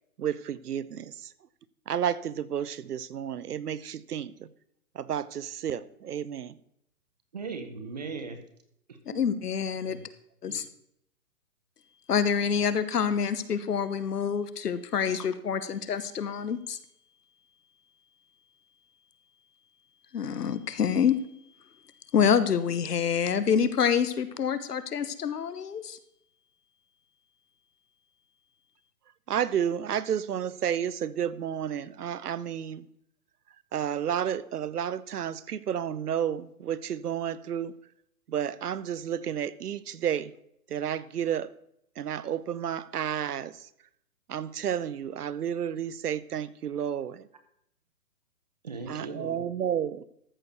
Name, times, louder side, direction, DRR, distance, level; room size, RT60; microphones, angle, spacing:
voice 1, 0.2-1.1 1.9-4.5 5.0-6.5 29.3-32.9 33.7-37.7 38.3-40.3 40.7-41.5 42.0-43.5 44.3-47.2 48.9-50.1, right 9 dB, 75° right, 18 dB, 0.8 m, -31 dB
voice 2, 7.3-8.4 8.9-9.0 9.8-10.0 10.5-10.6 48.6-49.5, right 4 dB, 25° right, 8 dB, 0.9 m, -38 dB
voice 3, 9.1-10.0 10.4-10.6 12.1-16.8 20.1-21.2 22.1-26.0, left 7 dB, 75° left, 13 dB, 1.2 m, -27 dB
13.5 x 4.7 x 6.7 m, 0.75 s
hypercardioid pair, 175°, 47 cm